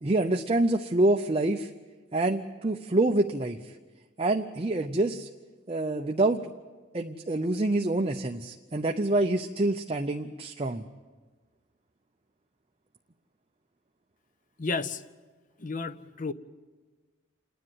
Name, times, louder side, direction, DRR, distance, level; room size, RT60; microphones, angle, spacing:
voice 1, 0.0-1.7 2.1-3.7 4.2-5.3 5.7-6.4 6.9-10.8, right 2 dB, 30° right, 3 dB, 0.6 m, -26 dB
voice 2, 14.6-15.0 15.6-16.3, left 3 dB, 40° left, 13 dB, 0.6 m, -32 dB
28.0 x 10.0 x 9.3 m, 1.3 s
head